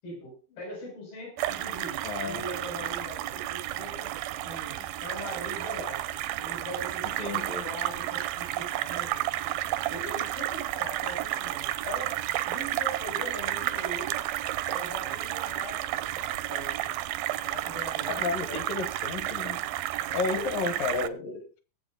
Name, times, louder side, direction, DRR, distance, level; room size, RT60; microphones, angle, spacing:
voice 1, 0.0-4.1 4.4-6.1 6.4-9.3 9.9-12.2 12.5-14.1 14.7-16.9 17.4-18.6 20.3-20.5, equal, 90° left, 9.3 m, -41 dB
sound 1, 1.4-21.1, right 14 dB, 85° right, 2.6 m, -32 dB
voice 2, 2.0-2.4 7.2-7.6 18.1-19.6 20.1-21.6, left 4 dB, 70° left, 3.2 m, -32 dB
20.5 x 7.6 x 3.9 m
omnidirectional pair, 4.2 m